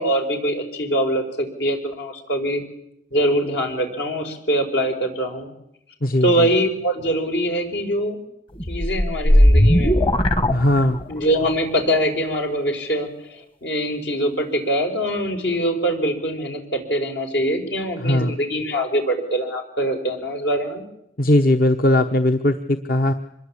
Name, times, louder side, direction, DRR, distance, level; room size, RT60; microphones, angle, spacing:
voice 1, 0.0-2.6 3.1-5.5 6.2-8.2 8.7-10.0 11.1-20.8, equal, 80° left, 4 dB, 5.2 m, -23 dB
voice 2, 6.0-6.5 10.5-11.0 18.0-18.4 21.2-23.1, left 1 dB, 55° left, 7 dB, 1.0 m, -19 dB
sound 1, 8.6-11.3, equal, 30° left, 1.3 m, -17 dB
25.5 x 21.5 x 8.7 m, 0.78 s
head